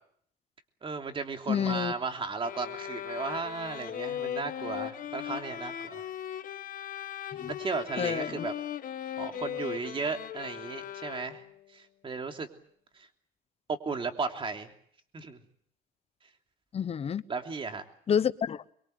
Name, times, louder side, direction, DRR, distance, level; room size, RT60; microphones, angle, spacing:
voice 1, 0.8-6.0 7.6-8.5 9.2-11.4 11.7-12.5 12.9-13.1 13.7-14.7 15.1-15.4 17.3-17.8, right 4 dB, 30° right, 3.1 m, -35 dB
voice 2, 1.5-1.9 7.4-7.5 8.0-8.5 16.7-17.2 18.1-18.6, left 8 dB, 35° left, 1.0 m, -28 dB
sound 1, 2.4-11.6, left 10 dB, 55° left, 1.5 m, -38 dB
24.0 x 23.0 x 8.0 m
cardioid pair, 110°, 17 cm